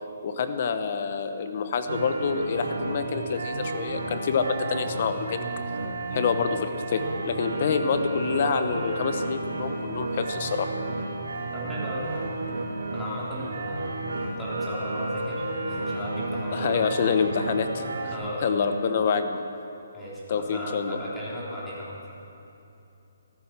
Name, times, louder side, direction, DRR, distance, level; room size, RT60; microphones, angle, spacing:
voice 1, 0.2-5.5 6.1-10.7 16.5-18.1 18.4-19.4 20.3-21.0, left 5 dB, 40° left, 8 dB, 1.1 m, -27 dB
sound 1, 1.9-18.2, right 2 dB, 85° right, 2.6 m, -32 dB
voice 2, 11.5-12.4 12.9-13.9 14.2-16.8 18.1-18.7 19.9-22.0, equal, 5° left, -8 dB, 3.3 m, -36 dB
14.0 x 14.0 x 6.1 m, 2.9 s
hypercardioid pair, 165°, 0 cm